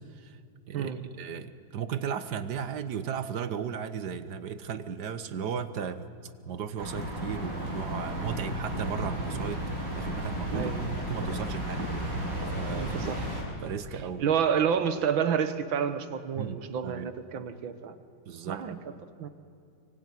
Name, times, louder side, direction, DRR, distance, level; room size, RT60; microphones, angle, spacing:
voice 1, 0.7-6.1 6.4-9.6 10.0-11.9 12.5-13.1 13.6-14.3 16.4-17.1 18.3-18.6, right 7 dB, 60° right, 12 dB, 1.6 m, -35 dB
sound 1, 6.8-13.4, equal, 45° right, 6.3 m, -33 dB
voice 2, 10.5-11.0 12.7-13.2 14.2-17.9 18.5-18.8 19.2-19.3, right 7 dB, 75° right, 10 dB, 2.1 m, -29 dB
25.0 x 24.0 x 9.9 m, 2.5 s
omnidirectional pair, 2.2 m